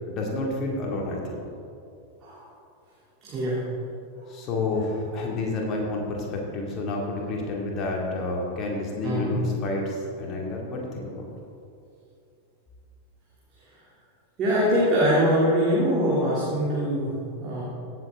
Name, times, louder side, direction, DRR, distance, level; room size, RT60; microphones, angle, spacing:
voice 1, 0.1-1.4 4.3-11.3, left 2 dB, 35° left, -1 dB, 2.5 m, -29 dB
voice 2, 3.3-3.6 9.0-9.4 14.4-17.6, equal, 30° right, -8 dB, 2.9 m, -23 dB
16.5 x 7.7 x 3.8 m, 2.5 s
figure-of-eight pair, 90°, 0 cm